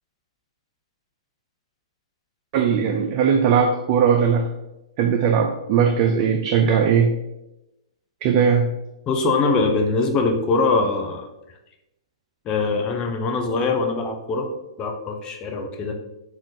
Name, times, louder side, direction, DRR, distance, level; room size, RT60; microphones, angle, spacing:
voice 1, 2.5-4.5 5.0-7.2 8.2-8.7, right 7 dB, 40° right, 3 dB, 0.3 m, -19 dB
voice 2, 9.1-11.3 12.5-14.5 14.8-15.9, left 3 dB, 25° left, 3 dB, 0.5 m, -22 dB
2.5 x 2.4 x 3.5 m, 0.93 s
hypercardioid pair, 125°, 3 cm